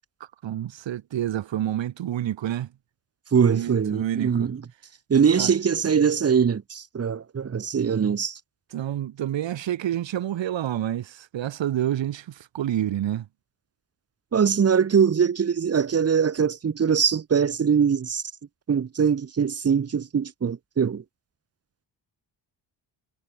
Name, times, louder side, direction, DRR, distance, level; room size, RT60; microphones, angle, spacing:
voice 1, 0.4-2.7 3.4-4.5 5.3-5.5 8.7-13.3, right 11 dB, 70° right, 2.0 m, -28 dB
voice 2, 3.3-4.6 5.1-8.4 14.3-18.2 18.7-21.0, right 7 dB, 30° right, 1.3 m, -22 dB
wide cardioid pair, 160°, 46 cm